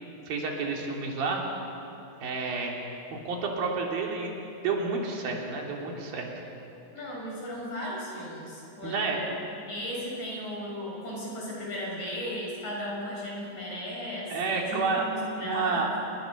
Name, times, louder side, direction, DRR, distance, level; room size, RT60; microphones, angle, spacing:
voice 1, 0.3-1.5 2.2-2.7 3.1-4.4 4.6-6.3 8.8-9.2 14.3-15.1 15.4-15.9, right 4 dB, 80° right, 0 dB, 4.6 m, -30 dB
voice 2, 6.9-9.3 9.6-15.9, equal, 55° left, -3 dB, 7.9 m, -36 dB
29.5 x 21.0 x 6.5 m, 2.9 s
omnidirectional pair, 4.1 m